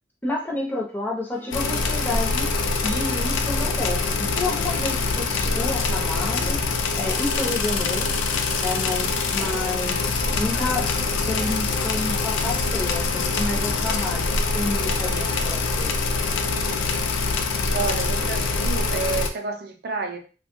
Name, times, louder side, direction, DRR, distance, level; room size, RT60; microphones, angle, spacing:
voice 1, 0.2-2.5 2.8-6.6 7.0-8.1 8.6-10.0 10.4-10.9 11.3-16.0, left 2 dB, 10° left, -3 dB, 0.6 m, -30 dB
sound 1, 1.3-17.1, left 1 dB, 50° left, 1.0 m, -42 dB
sound 2, 1.5-19.3, left 3 dB, 80° left, 0.4 m, -24 dB
voice 2, 17.7-20.2, right 4 dB, 50° right, 4 dB, 0.5 m, -29 dB
2.8 x 2.2 x 2.9 m, 0.36 s
head